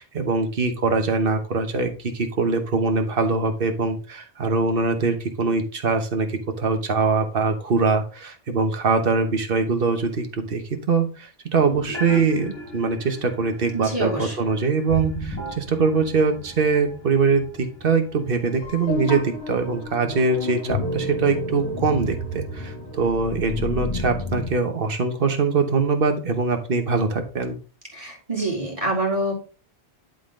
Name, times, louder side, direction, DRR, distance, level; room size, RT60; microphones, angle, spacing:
voice 1, 0.0-27.6, right 4 dB, 60° right, 6 dB, 1.3 m, -23 dB
sound 1, 11.5-24.5, left 1 dB, 75° left, 3.7 m, -32 dB
voice 2, 13.7-14.4 27.9-29.3, right 2 dB, 35° right, -2 dB, 2.9 m, -26 dB
11.0 x 3.8 x 3.7 m, 0.37 s
omnidirectional pair, 1.1 m